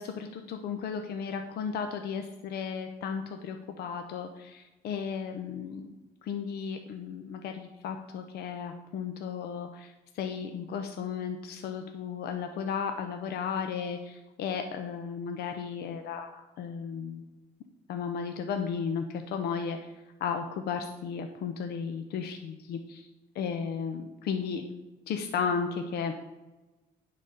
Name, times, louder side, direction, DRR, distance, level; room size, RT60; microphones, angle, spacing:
voice 1, 0.0-5.9 6.2-17.2 17.9-19.9 20.2-23.1 23.3-24.6 25.1-26.1, left 6 dB, 70° left, 6 dB, 0.8 m, -34 dB
9.8 x 4.2 x 6.8 m, 1.1 s
cardioid pair, 110°, 17 cm